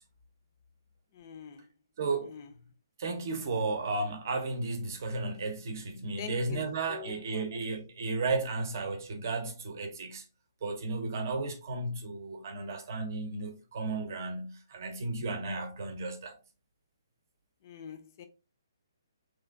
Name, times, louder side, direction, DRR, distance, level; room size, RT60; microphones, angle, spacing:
voice 1, 1.1-1.7 2.3-2.5 6.2-7.6 17.6-18.3, left 7 dB, 40° left, 0.5 m, -45 dB
voice 2, 2.0-2.3 3.0-10.2 10.6-16.4, right 3 dB, 50° right, 0.7 m, -34 dB
3.2 x 2.4 x 2.3 m
figure-of-eight pair, 135°, 2 cm